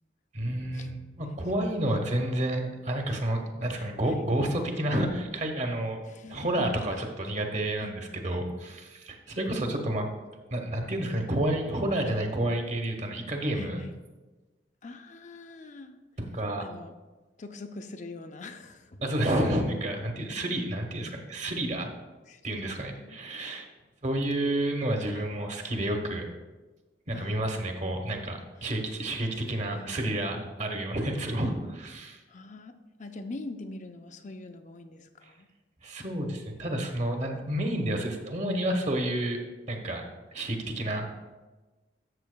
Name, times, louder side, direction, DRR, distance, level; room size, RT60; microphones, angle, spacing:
voice 1, 0.3-6.0 6.3-10.1 10.5-13.8 16.3-16.6 19.0-21.9 22.4-23.7 24.0-26.3 27.1-32.2 35.8-39.4 39.7-40.0 40.3-41.1, right 1 dB, 40° right, 4 dB, 1.1 m, -30 dB
voice 2, 3.7-4.3 6.0-6.8 7.8-8.0 8.2-8.5 13.5-14.0 14.8-16.0 16.6-16.9 17.4-19.0 20.2-20.6 22.3-23.2 25.1-25.3 27.1-27.4 28.6-29.0 29.7-30.1 32.0-35.5, left 3 dB, 45° left, 7 dB, 0.6 m, -44 dB
12.5 x 7.4 x 2.2 m, 1.2 s
head